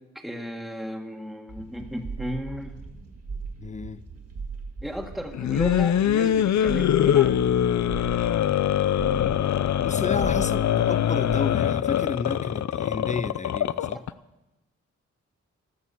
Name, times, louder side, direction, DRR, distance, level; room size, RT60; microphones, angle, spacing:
voice 1, 0.1-2.7 4.8-7.4 13.9-14.0, equal, ahead, 1.8 m, -34 dB
sound 1, 1.5-11.4, right 4 dB, 55° right, 2.5 m, -39 dB
voice 2, 3.6-4.0 9.8-14.0, left 4 dB, 25° left, 0.7 m, -32 dB
sound 2, 5.3-14.1, left 10 dB, 70° left, 0.6 m, -23 dB
14.0 x 12.0 x 7.0 m
cardioid pair, 60°, 29 cm